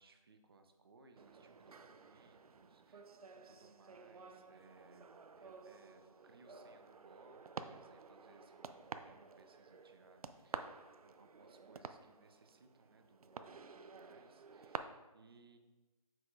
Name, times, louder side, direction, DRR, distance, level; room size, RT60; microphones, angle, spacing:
voice 1, 0.0-5.1 5.4-15.6, right 3 dB, 40° right, 6 dB, 0.7 m, -65 dB
sound 1, 1.2-14.8, right 5 dB, 80° right, 0.5 m, -51 dB
7.6 x 5.9 x 2.4 m, 1.1 s
figure-of-eight pair, 165°, 19 cm